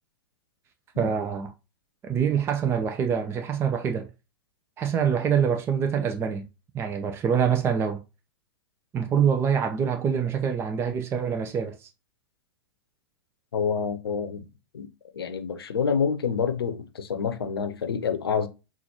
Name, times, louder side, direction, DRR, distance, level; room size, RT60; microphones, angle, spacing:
voice 1, 1.0-1.5 2.0-4.1 4.8-6.5 6.7-8.0 8.9-11.9, right 7 dB, 20° right, 0.5 m, -25 dB
voice 2, 13.5-14.5 14.7-14.9 15.1-18.5, left 6 dB, 75° left, 0.7 m, -27 dB
5.8 x 2.4 x 2.8 m
figure-of-eight pair, 100°, 13 cm